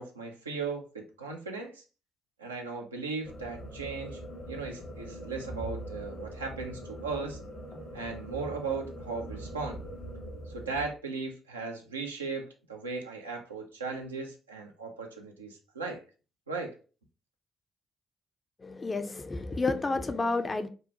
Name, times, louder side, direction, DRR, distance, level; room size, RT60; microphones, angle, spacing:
voice 1, 0.0-1.8 2.4-4.2 4.5-7.4 7.9-9.8 10.5-16.0 16.5-16.8, right 4 dB, 90° right, 0.4 m, -37 dB
sound 1, 3.2-10.9, right 1 dB, 55° left, 0.8 m, -42 dB
voice 2, 18.6-20.7, left 3 dB, 30° left, 0.4 m, -30 dB
2.7 x 2.1 x 2.7 m
figure-of-eight pair, 40°, 0 cm